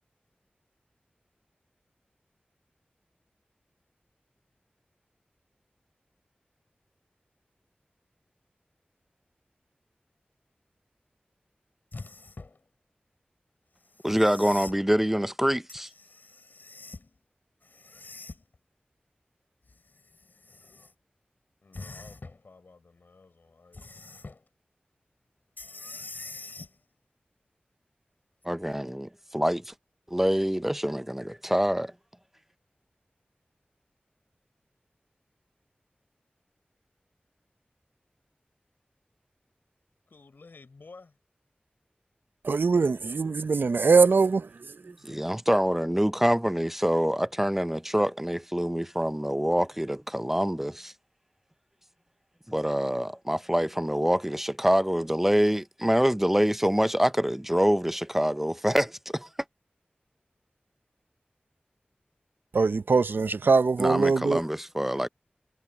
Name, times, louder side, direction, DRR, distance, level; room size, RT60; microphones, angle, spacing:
sound 1, 11.9-12.6 13.9-14.8 15.7-17.1 17.6-18.6 19.7-20.9 21.7-22.4 23.7-24.4 25.6-26.7 28.4-28.5, left 3 dB, 65° left, 6.7 m, -44 dB
voice 1, 14.0-15.9 28.4-29.7 30.1-31.9 45.0-50.9 52.5-59.3 63.8-65.1, equal, 10° right, 0.5 m, -25 dB
voice 2, 21.6-24.0 40.1-41.2, left 4 dB, 90° left, 4.6 m, -53 dB
voice 3, 42.4-44.9 62.5-64.4, right 4 dB, 90° right, 0.5 m, -22 dB
wide cardioid pair, 70°, 3 cm